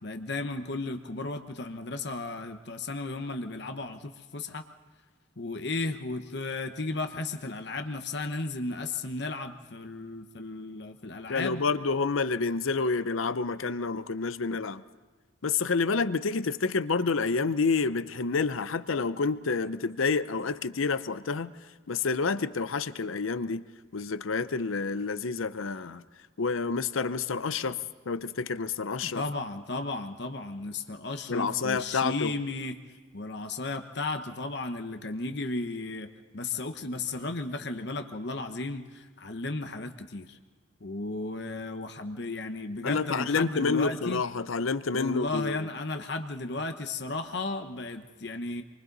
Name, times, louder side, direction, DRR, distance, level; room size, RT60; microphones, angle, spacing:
voice 1, 0.0-4.6 5.4-11.6 29.0-32.8 33.1-36.1 36.3-40.4 40.8-44.2 44.9-48.6, left 2 dB, 55° left, 6 dB, 1.0 m, -34 dB
voice 2, 11.3-14.8 15.4-21.5 21.9-23.6 23.9-26.0 26.4-27.8 28.1-29.2 31.3-32.3 42.8-45.7, left 4 dB, 85° left, 13 dB, 0.7 m, -28 dB
27.5 x 24.0 x 4.0 m, 1.4 s
head